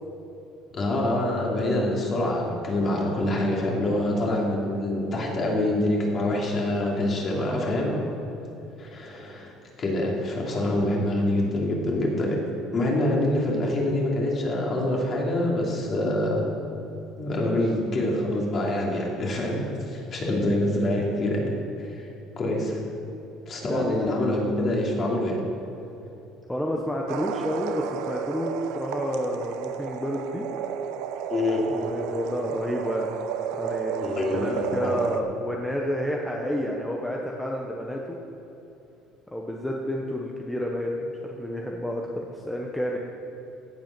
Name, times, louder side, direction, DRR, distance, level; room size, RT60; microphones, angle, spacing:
voice 1, 0.7-7.9 8.8-9.5 9.8-12.3 12.7-16.4 17.2-21.5 21.8-22.1 22.4-22.8 23.5-25.4 31.3-31.7 34.0-35.0, left 1 dB, 30° left, -2 dB, 2.8 m, -25 dB
voice 2, 7.3-8.2 23.6-24.2 26.5-30.5 31.7-33.1 33.5-38.2 39.3-43.0, equal, 5° left, -1 dB, 0.9 m, -30 dB
sound 1, 27.1-35.2, right 8 dB, 75° right, 0.8 m, -32 dB
16.5 x 8.1 x 6.0 m, 3.0 s
cardioid pair, 160°, 0 cm